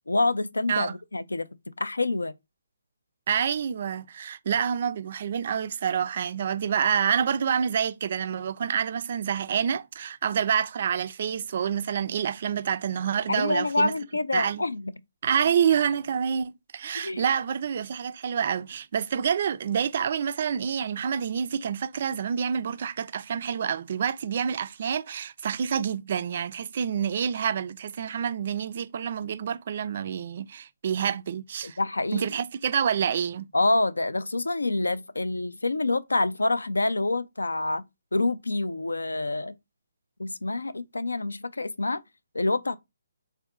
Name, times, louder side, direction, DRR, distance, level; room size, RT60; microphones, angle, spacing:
voice 1, 0.1-1.5 1.8-2.3 13.3-14.9 16.9-17.2 31.6-32.4 33.5-37.8 38.1-39.5 40.2-42.0 42.3-42.8, left 2 dB, 75° left, 0.4 m, -27 dB
voice 2, 3.3-13.9 14.3-14.6 15.2-31.8 32.1-33.5, right 8 dB, 45° right, 0.3 m, -27 dB
3.4 x 2.6 x 2.4 m
figure-of-eight pair, 140°, 0 cm